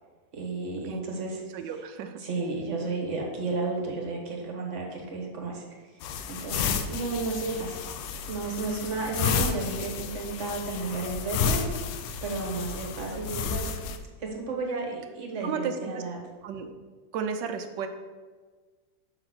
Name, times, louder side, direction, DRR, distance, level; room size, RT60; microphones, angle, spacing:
voice 1, 0.3-1.4 2.2-5.6 6.3-7.9 8.3-11.7 12.2-13.7 14.2-16.2, right 3 dB, 45° right, 1 dB, 1.4 m, -32 dB
voice 2, 1.5-2.2 13.1-13.2 13.4-13.7 15.4-16.0 16.4-16.7 17.1-17.9, right 6 dB, 80° right, 7 dB, 1.3 m, -33 dB
sound 1, 6.0-14.0, left 6 dB, 85° left, 1.3 m, -31 dB
6.4 x 3.9 x 6.0 m, 1.4 s
omnidirectional pair, 1.9 m